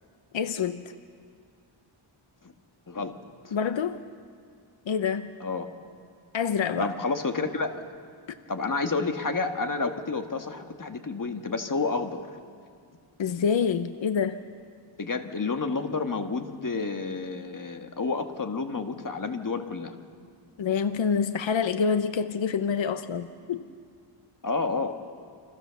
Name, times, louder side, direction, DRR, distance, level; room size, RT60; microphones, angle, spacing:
voice 1, 0.3-0.9 3.5-4.0 4.9-5.3 6.3-6.9 13.2-14.4 20.6-23.6, left 6 dB, 65° left, 10 dB, 0.9 m, -27 dB
voice 2, 6.8-7.9 8.5-12.3 15.0-19.9 24.4-24.9, left 4 dB, 40° left, 6 dB, 1.8 m, -30 dB
30.0 x 24.5 x 7.1 m, 2.2 s
wide cardioid pair, 110°, 48 cm